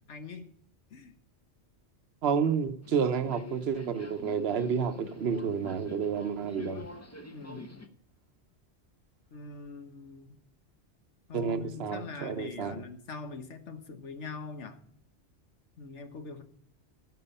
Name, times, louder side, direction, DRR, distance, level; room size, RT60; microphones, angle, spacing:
voice 1, 0.1-0.5 0.9-1.1 7.3-7.8 9.3-10.4 11.3-14.8 15.8-16.4, left 4 dB, 90° left, 1.6 m, -43 dB
voice 2, 2.2-6.8 11.3-12.8, right 6 dB, 65° right, 1.1 m, -30 dB
Subway metro underground, 2.8-7.9, left 1 dB, 15° left, 0.8 m, -46 dB
15.5 x 6.1 x 5.5 m
omnidirectional pair, 1.2 m